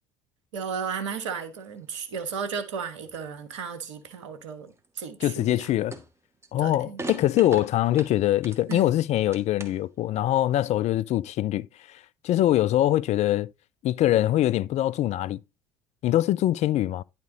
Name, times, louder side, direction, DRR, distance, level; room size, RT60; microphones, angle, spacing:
voice 1, 0.5-5.7 6.6-7.0 8.7-9.0, right 6 dB, 80° right, 1.3 m, -34 dB
sound 1, 1.4-2.0 2.4-4.0 4.3-4.9 5.3-5.6 5.9-6.5 7.0-8.9 9.2-9.9, right 2 dB, 15° right, 1.6 m, -40 dB
voice 2, 5.2-6.0 6.5-13.5 13.8-15.4 16.0-17.0, left 13 dB, 45° left, 0.4 m, -23 dB
10.5 x 4.3 x 3.9 m
hypercardioid pair, 65°, 15 cm